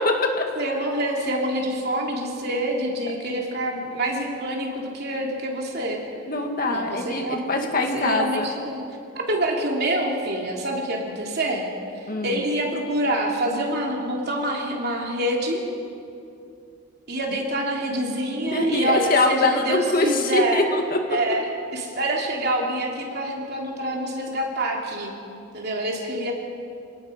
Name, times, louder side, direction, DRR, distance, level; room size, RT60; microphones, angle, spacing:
voice 1, 0.0-0.4 6.3-8.5 12.1-12.4 18.5-21.0, left 2 dB, 40° left, 3 dB, 2.0 m, -23 dB
voice 2, 0.6-6.0 6.7-7.5 7.9-8.8 9.3-11.7 12.2-15.6 17.1-20.6 21.1-25.1 25.5-26.3, right 1 dB, 50° right, 0 dB, 3.2 m, -26 dB
28.0 x 18.5 x 5.3 m, 2.5 s
head